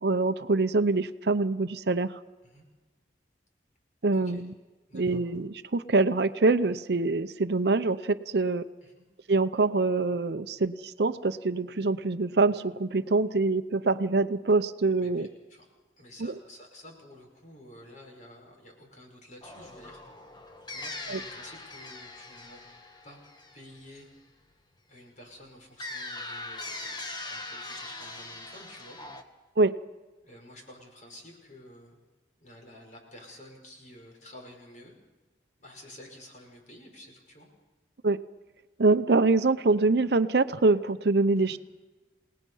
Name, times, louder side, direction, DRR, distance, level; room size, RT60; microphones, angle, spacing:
voice 1, 0.0-2.2 4.0-4.5 4.9-8.6 9.3-15.3 16.2-16.3 21.1-21.2 29.6-29.7 38.0-38.2 38.8-41.6, right 3 dB, 60° right, 12 dB, 0.7 m, -25 dB
voice 2, 4.9-5.2 8.8-9.0 15.0-15.7 16.0-20.0 20.7-22.6 23.0-23.2 23.5-24.1 24.9-29.0 30.2-32.0 32.4-34.9 35.6-37.5 41.4-41.6, left 1 dB, 45° left, 1 dB, 5.6 m, -51 dB
sound 1, 19.4-24.2 25.8-29.2, left 2 dB, 25° left, 1.5 m, -41 dB
29.0 x 18.5 x 5.6 m, 1.2 s
head